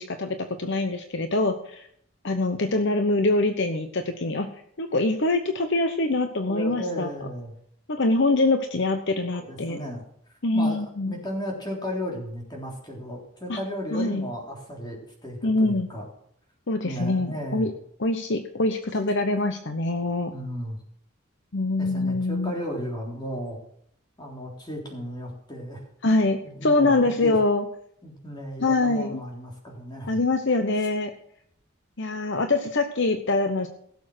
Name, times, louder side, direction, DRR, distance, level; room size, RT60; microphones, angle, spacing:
voice 1, 0.0-1.9 2.2-4.5 4.8-7.1 7.9-9.8 10.4-11.2 13.5-13.6 13.9-14.3 15.4-15.9 16.7-17.7 18.0-20.3 21.5-22.5 26.0-27.6 28.6-29.2 30.1-31.1 32.0-33.7, left 2 dB, 55° left, 7 dB, 1.0 m, -24 dB
voice 2, 6.5-7.5 9.3-10.0 10.5-16.1 16.8-17.7 20.3-20.8 21.8-23.6 24.2-25.8 26.1-27.4 28.0-30.2, equal, 20° left, -1 dB, 3.5 m, -34 dB
16.5 x 7.1 x 6.2 m, 0.66 s
head